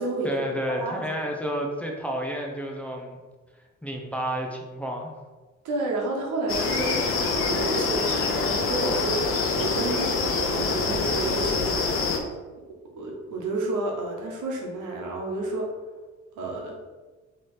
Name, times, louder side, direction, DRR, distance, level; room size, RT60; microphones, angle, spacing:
voice 1, 0.2-3.2 3.8-5.1, equal, 5° left, 0 dB, 0.7 m, -30 dB
voice 2, 0.8-1.3 5.6-11.9 13.0-15.7 16.4-16.8, right 2 dB, 85° right, -1 dB, 1.1 m, -30 dB
sound 1, 6.5-12.2, left 4 dB, 45° left, 0.7 m, -25 dB
3.2 x 3.1 x 4.3 m, 1.3 s
cardioid pair, 90°, 30 cm